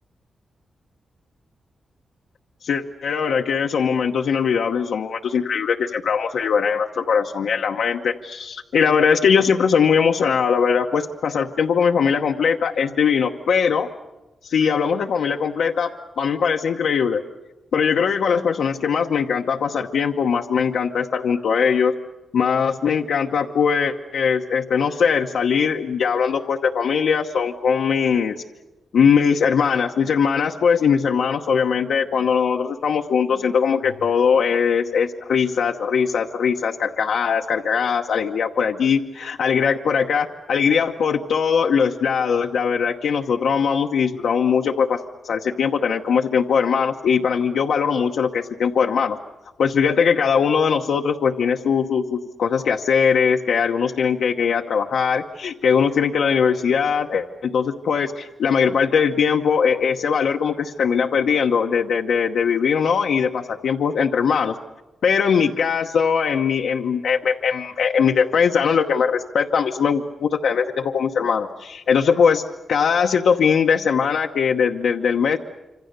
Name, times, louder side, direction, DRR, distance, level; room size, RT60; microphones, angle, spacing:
voice 1, 2.6-13.9 14.4-17.2 17.7-21.9 22.3-28.4 28.9-49.2 49.6-64.6 65.0-72.4 72.7-75.4, left 6 dB, 80° left, 2 dB, 1.0 m, -20 dB
26.5 x 26.0 x 6.7 m, 1.1 s
wide cardioid pair, 175°, 0 cm